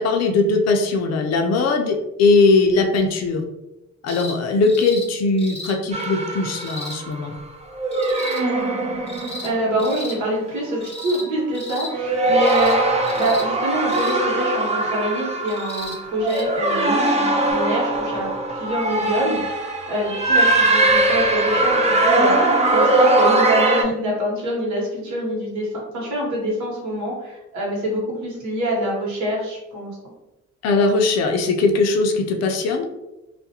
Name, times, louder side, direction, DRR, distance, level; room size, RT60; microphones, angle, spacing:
voice 1, 0.0-3.4 4.0-7.3 30.6-32.9, left 3 dB, 60° left, 3 dB, 0.5 m, -19 dB
sound 1, 4.1-4.4 4.7-5.1 5.4-5.7 6.5-7.0 7.9-8.4 9.1-9.5 9.8-10.2 10.8-11.3 11.5-11.9 12.4-12.8 13.0-13.4 13.9-14.2 15.5-16.0 16.3-16.4 17.5-17.6, left 1 dB, 20° left, 0.7 m, -35 dB
sound 2, 5.9-7.3 7.7-10.2 10.7-11.1 11.8-23.8, right 2 dB, 25° right, 0.4 m, -21 dB
voice 2, 9.4-12.8 13.1-22.3 22.7-25.7 25.9-29.9, right 1 dB, 70° right, -4 dB, 1.1 m, -25 dB
2.4 x 2.1 x 2.8 m, 0.96 s
cardioid pair, 90°, 30 cm